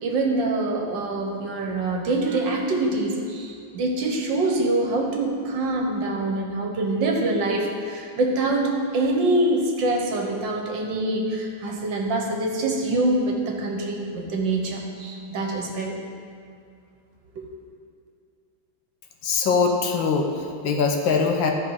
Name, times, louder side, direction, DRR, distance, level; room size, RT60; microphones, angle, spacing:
voice 1, 0.0-16.0 17.4-17.5, right 2 dB, 65° right, 1 dB, 1.7 m, -25 dB
voice 2, 19.2-21.5, left 5 dB, 70° left, 2 dB, 1.6 m, -22 dB
13.5 x 4.8 x 4.8 m, 2.4 s
omnidirectional pair, 2.2 m